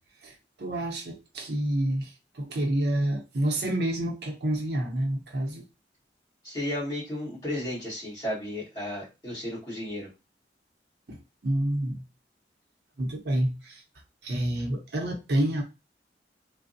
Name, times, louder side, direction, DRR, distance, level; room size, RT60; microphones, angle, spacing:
voice 1, 0.2-5.7 11.1-12.0 13.0-13.8 14.2-15.6, right 1 dB, 70° right, 0.7 m, -28 dB
voice 2, 6.4-10.1, left 1 dB, 20° left, 1.4 m, -33 dB
3.3 x 2.0 x 2.5 m
head